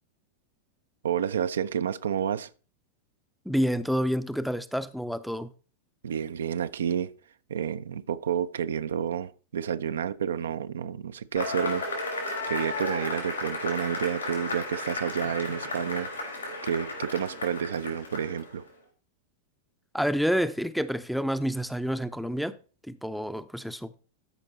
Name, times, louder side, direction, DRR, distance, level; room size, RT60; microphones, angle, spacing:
voice 1, 1.0-2.5 6.0-7.1 7.5-11.9 12.5-16.1 16.6-18.6, right 8 dB, 65° right, 0.4 m, -30 dB
voice 2, 3.5-5.5 19.9-22.6 22.9-23.9, equal, ahead, 0.5 m, -28 dB
Cheering / Applause / Crowd, 11.4-18.6, left 2 dB, 80° left, 3.1 m, -34 dB
13.0 x 5.2 x 4.2 m
figure-of-eight pair, 90°, 0 cm